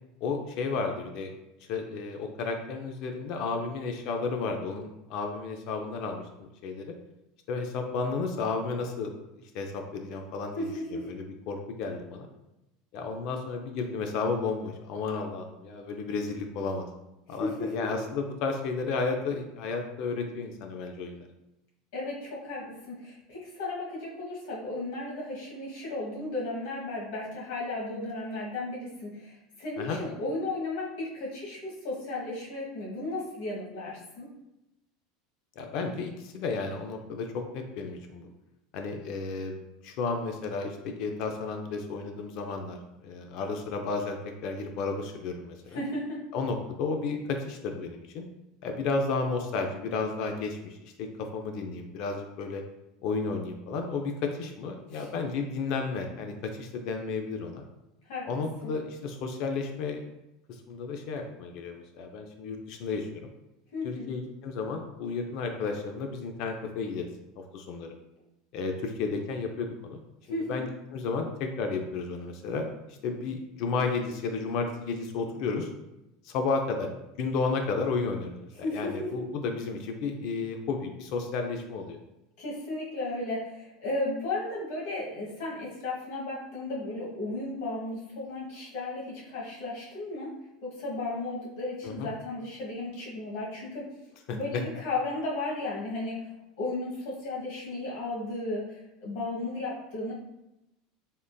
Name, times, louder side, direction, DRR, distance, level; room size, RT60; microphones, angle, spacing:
voice 1, 0.2-1.3 1.7-7.0 7.5-9.1 9.5-12.3 12.9-16.9 17.3-21.3 29.8-30.0 35.6-38.3 38.7-39.5 39.8-45.8 46.3-48.2 48.6-52.6 53.0-57.6 58.3-60.0 60.5-63.3 63.8-67.1 67.4-67.9 68.5-70.0 70.3-75.7 76.2-76.9 77.2-82.0 91.8-92.1 94.3-94.6, left 4 dB, 50° left, 4 dB, 0.3 m, -32 dB
voice 2, 10.5-11.1 17.4-17.8 21.9-34.3 45.7-46.2 54.9-55.1 58.0-58.3 58.6-58.7 63.7-64.1 70.3-70.7 78.6-79.1 82.4-90.3 90.6-93.9 94.3-96.3 96.6-100.1, left 2 dB, 70° left, -4 dB, 1.2 m, -34 dB
3.5 x 2.5 x 2.2 m, 0.93 s
supercardioid pair, 160°, 0 cm